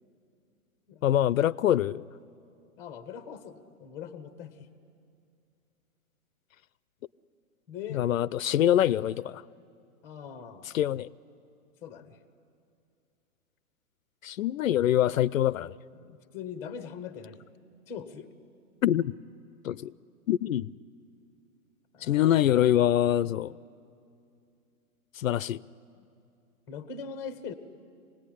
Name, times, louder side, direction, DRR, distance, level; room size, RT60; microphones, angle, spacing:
voice 1, 1.0-2.0 7.9-9.4 10.7-11.1 14.2-15.8 18.8-19.1 19.6-19.9 20.3-20.7 22.0-23.5 25.2-25.6, left 11 dB, 65° left, 0.5 m, -24 dB
voice 2, 2.8-4.5 7.7-8.1 10.0-10.8 11.8-12.2 15.9-17.4 17.9-18.3 21.9-22.4 26.0-26.1 26.7-27.5, left 7 dB, 5° left, 0.6 m, -41 dB
25.0 x 18.0 x 10.0 m
hypercardioid pair, 150°, 44 cm